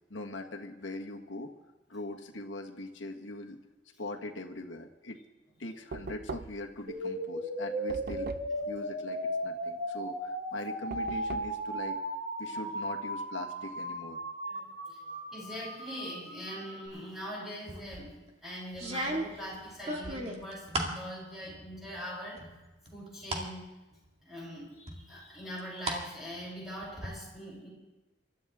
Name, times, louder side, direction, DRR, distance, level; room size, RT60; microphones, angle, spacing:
voice 1, 0.1-1.5 1.9-3.6 4.0-5.2 5.6-8.3 8.7-12.0 12.4-14.2, left 2 dB, 85° left, 3 dB, 1.5 m, -41 dB
Knock, 5.9-6.8 7.9-8.6 10.9-11.6, right 4 dB, 55° right, 0.5 m, -41 dB
sound 1, 6.9-16.9, right 1 dB, 75° right, 6.8 m, -36 dB
voice 2, 14.4-18.1 18.4-22.6 22.9-23.7 24.2-27.7, equal, ahead, -6 dB, 8.0 m, -42 dB
sound 2, 17.7-18.1 18.7-21.0 21.4-22.0 22.4-23.5 23.9-24.0 24.9-26.0 26.3-27.1, right 1 dB, 35° right, 2.3 m, -36 dB
28.5 x 13.0 x 3.6 m, 1.1 s
head